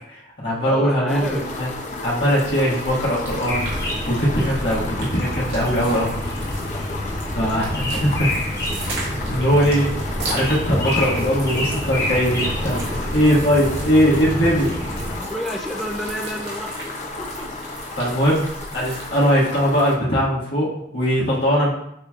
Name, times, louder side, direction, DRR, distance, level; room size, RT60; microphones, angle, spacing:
voice 1, 0.1-1.7 2.0-6.1 7.3-8.4 8.8-14.7 18.0-21.7, equal, 75° left, -6 dB, 1.6 m, -21 dB
voice 2, 0.6-1.5 15.2-16.8 17.2-17.5, equal, ahead, 0 dB, 0.4 m, -30 dB
sound 1, 1.1-20.0, left 2 dB, 45° left, 0.6 m, -33 dB
sound 2, 2.1-19.3, right 2 dB, 70° right, 1.6 m, -37 dB
sound 3, 3.5-15.2, left 1 dB, 20° left, 1.3 m, -28 dB
6.5 x 3.0 x 2.4 m, 0.77 s
head